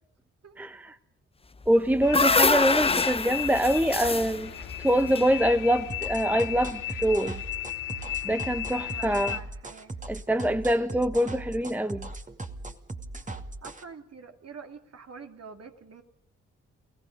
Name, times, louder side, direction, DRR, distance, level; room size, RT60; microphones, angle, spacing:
voice 1, 0.6-0.9 1.7-4.5 4.8-7.4 8.2-9.3 10.1-12.1, equal, 5° right, 1.0 m, -25 dB
sound 1, 1.6-5.9, left 3 dB, 15° left, 0.8 m, -26 dB
sound 2, 2.0-9.4, left 14 dB, 60° left, 1.9 m, -35 dB
sound 3, 5.9-13.8, right 2 dB, 20° right, 2.4 m, -38 dB
voice 2, 8.7-10.0 13.6-16.0, right 5 dB, 45° right, 2.7 m, -45 dB
29.0 x 18.5 x 5.3 m
hypercardioid pair, 40°, 35 cm